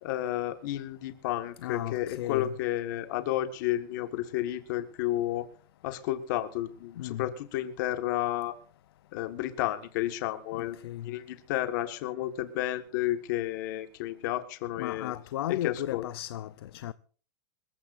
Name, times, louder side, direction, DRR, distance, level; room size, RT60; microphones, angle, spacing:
voice 1, 0.0-5.5 5.8-8.5 9.1-15.1 15.5-16.1, left 14 dB, 40° left, 1.6 m, -32 dB
voice 2, 1.6-2.5 7.0-7.3 10.5-11.1 14.8-16.9, left 13 dB, 55° left, 0.7 m, -35 dB
27.0 x 15.0 x 2.6 m
supercardioid pair, 180°, 15 cm